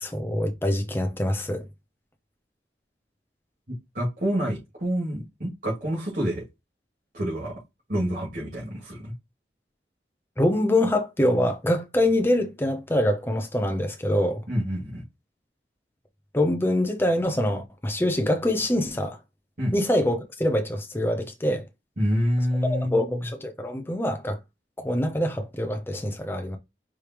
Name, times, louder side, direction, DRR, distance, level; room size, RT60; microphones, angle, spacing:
voice 1, 0.0-1.6 10.4-14.4 16.3-19.2 19.7-21.7 22.6-24.4 24.8-26.6, left 1 dB, 10° left, 0.7 m, -25 dB
voice 2, 3.9-6.5 7.1-7.5 7.9-9.1 14.5-15.0 19.6-19.7 22.0-23.2, equal, 50° right, 2.3 m, -27 dB
4.9 x 3.3 x 3.0 m
head